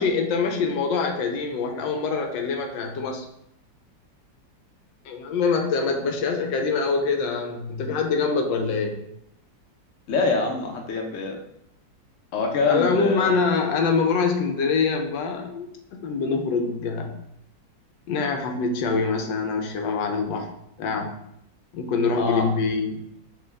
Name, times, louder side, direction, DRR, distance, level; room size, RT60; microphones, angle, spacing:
voice 1, 0.0-3.2 5.0-9.0 12.7-17.1 18.1-20.5 20.8-21.1 21.7-23.0, left 4 dB, 80° left, 3 dB, 1.3 m, -24 dB
voice 2, 10.1-11.4 12.3-13.4 22.2-22.4, left 4 dB, 60° left, 1 dB, 0.8 m, -25 dB
6.3 x 2.3 x 3.3 m, 0.77 s
omnidirectional pair, 2.1 m